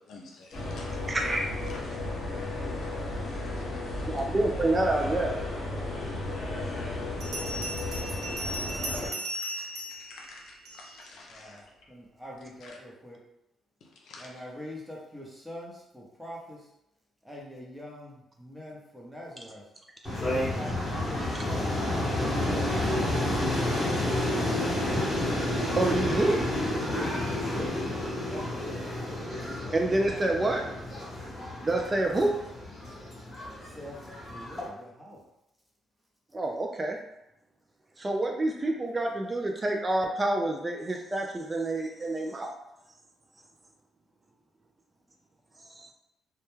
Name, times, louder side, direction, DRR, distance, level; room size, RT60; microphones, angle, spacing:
voice 1, 0.1-0.9 1.7-1.8 9.0-9.6 10.1-11.6 12.6-12.7 14.1-14.2, left 3 dB, 70° left, -1 dB, 0.6 m, -49 dB
sound 1, 0.5-9.1, left 2 dB, 50° left, 0.9 m, -34 dB
voice 2, 1.1-1.4 4.1-5.3 8.6-8.8 25.8-26.4 29.7-30.6 31.6-32.4 36.3-37.0 38.0-42.5 45.8-45.9, right 2 dB, 25° right, 2 dB, 0.3 m, -27 dB
Bell, 7.2-11.1, right 1 dB, 80° right, 0.6 m, -37 dB
voice 3, 11.3-13.2 14.2-16.7 17.2-19.7 20.2-21.8 22.0-24.0 26.9-29.1 29.5-30.3 33.6-35.3, left 1 dB, 5° right, -3 dB, 0.8 m, -45 dB
sound 2, 20.0-34.7, left 1 dB, 20° left, 0.9 m, -30 dB
2.2 x 2.1 x 3.0 m, 0.84 s
cardioid pair, 90°, 0 cm